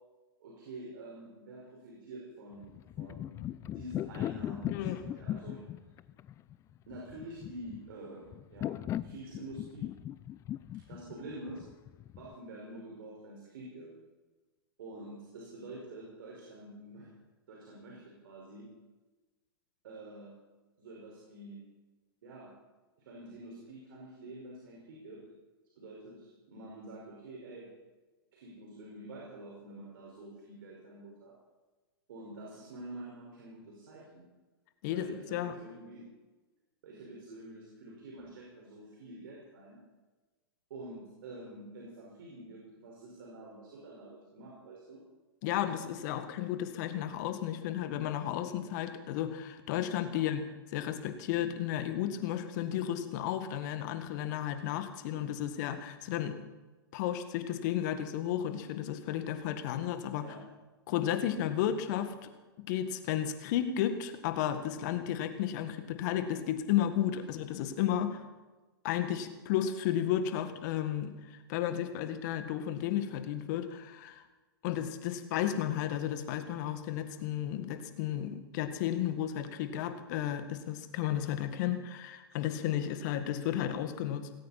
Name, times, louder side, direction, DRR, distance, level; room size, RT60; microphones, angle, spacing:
voice 1, 0.4-3.4 3.7-5.6 6.9-9.9 10.9-11.6 12.2-13.9 14.8-17.1 17.5-18.7 19.8-20.4 20.8-21.6 22.2-22.5 23.0-25.2 25.8-27.7 28.3-31.4 32.1-34.2 34.8-36.1 36.8-39.8 40.7-45.0 50.1-50.3 60.2-60.4, right 1 dB, 60° right, -3 dB, 5.1 m, -47 dB
sound 1, 2.6-12.3, left 12 dB, 25° left, 0.5 m, -39 dB
voice 2, 34.8-35.5 45.4-50.4 50.7-56.4 56.9-60.3 60.9-62.3 62.6-68.2 68.8-74.2 74.6-84.3, left 10 dB, 50° left, 9 dB, 1.8 m, -33 dB
18.5 x 17.0 x 4.3 m, 1.2 s
hypercardioid pair, 110°, 13 cm